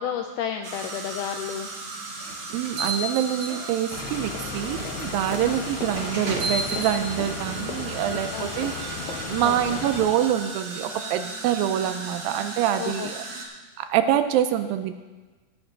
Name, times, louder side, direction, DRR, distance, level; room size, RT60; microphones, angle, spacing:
voice 1, 0.0-1.7 5.4-5.7 8.3-8.5 9.4-9.8 12.8-13.1, left 8 dB, 90° left, 5 dB, 1.8 m, -31 dB
sound 1, 0.6-13.5, right 3 dB, 60° right, 1.4 m, -37 dB
sound 2, 2.2-4.0 4.8-4.9 6.0-7.0, right 2 dB, 45° right, 2.4 m, -31 dB
voice 2, 2.5-13.2 13.8-14.9, right 11 dB, 80° right, 10 dB, 2.2 m, -26 dB
sound 3, 3.9-10.1, left 4 dB, 65° left, 2.0 m, -34 dB
17.0 x 7.6 x 3.9 m, 1.3 s
omnidirectional pair, 4.4 m